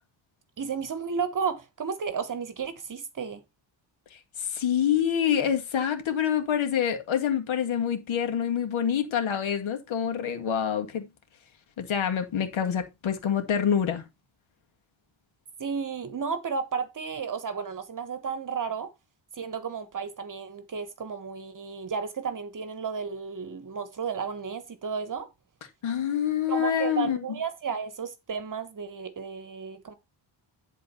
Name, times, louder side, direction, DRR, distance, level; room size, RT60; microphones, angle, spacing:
voice 1, 0.6-3.4 15.6-18.9 19.4-25.3 26.5-29.9, right 6 dB, 40° right, 1.2 m, -33 dB
voice 2, 4.4-11.1 11.8-14.0 25.8-27.2, left 8 dB, 80° left, 2.2 m, -26 dB
11.0 x 4.0 x 5.5 m
wide cardioid pair, 145°, 47 cm